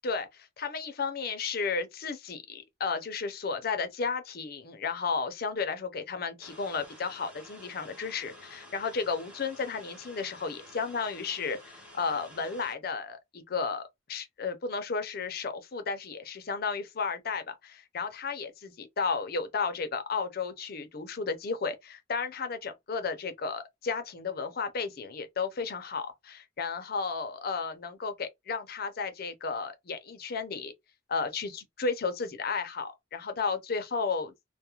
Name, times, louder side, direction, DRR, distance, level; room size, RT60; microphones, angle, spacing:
voice 1, 0.0-30.7 31.1-34.3, left 5 dB, 55° left, 0.5 m, -33 dB
sound 1, 6.4-12.7, left 1 dB, 5° right, 0.8 m, -51 dB
2.3 x 2.1 x 2.9 m
head